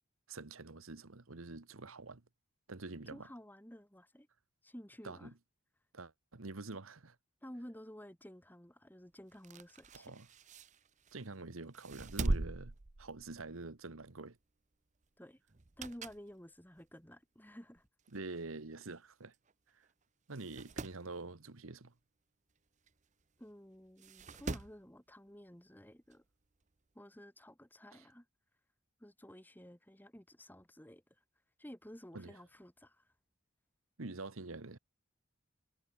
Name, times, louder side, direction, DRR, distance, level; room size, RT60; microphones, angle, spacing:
voice 1, 0.3-2.2 2.7-3.3 5.0-5.3 5.9-7.2 9.9-10.3 11.1-14.4 18.1-19.3 19.7-19.8 20.3-21.9 27.9-28.1 32.1-32.4 34.0-34.8, right 3 dB, 85° right, 1.3 m, -46 dB
voice 2, 3.1-4.3 4.6-5.3 7.4-10.1 15.2-15.4 15.8-17.9 23.4-26.2 26.9-28.3 29.0-31.0 31.6-33.0, equal, 10° left, 2.4 m, -53 dB
sound 1, 9.3-11.3 11.7-13.6 14.0-14.2 15.5-16.3 16.8-16.9 17.8-17.9 18.1-18.2 18.4-18.5 19.3-19.5 19.8-19.9 20.3-21.0 22.9-23.0 24.0-24.8 26.1-26.2, right 2 dB, 35° right, 0.8 m, -40 dB
head